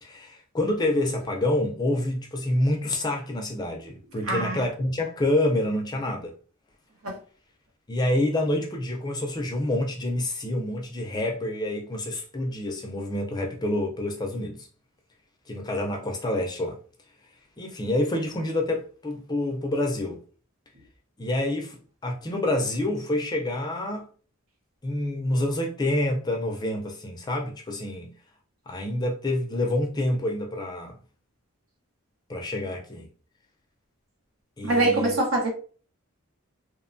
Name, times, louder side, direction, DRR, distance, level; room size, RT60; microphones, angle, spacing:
voice 1, 0.0-6.3 7.9-14.7 15.5-16.8 17.6-20.2 21.2-24.1 24.8-28.1 28.7-31.0 32.3-33.1 34.6-35.2, left 1 dB, 20° left, 0.3 m, -27 dB
voice 2, 4.3-4.6 7.0-7.2 34.6-35.5, right 2 dB, 70° right, 0.9 m, -24 dB
2.9 x 2.1 x 2.5 m
head